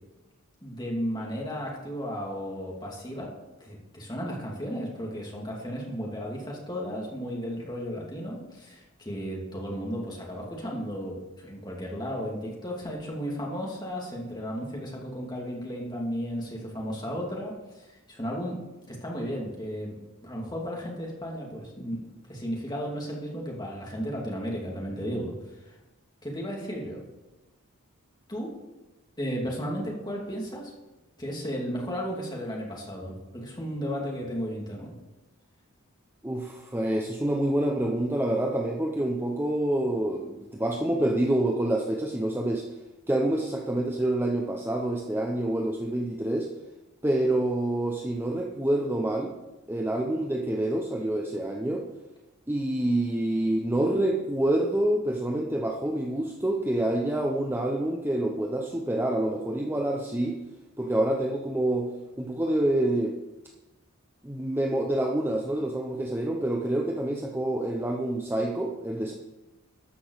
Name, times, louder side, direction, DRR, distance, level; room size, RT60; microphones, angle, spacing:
voice 1, 0.6-3.3 3.6-18.6 18.9-19.9 20.2-22.0 22.3-25.8 26.2-27.0 28.3-28.5 29.2-30.7 31.2-35.0, equal, 20° left, -2 dB, 2.5 m, -34 dB
voice 2, 36.2-42.6 43.1-46.5 47.0-49.3 49.7-51.8 52.5-60.4 60.8-61.9 62.2-63.1 64.2-69.1, right 1 dB, 10° right, 1 dB, 0.7 m, -27 dB
13.0 x 6.1 x 6.4 m, 1.1 s
head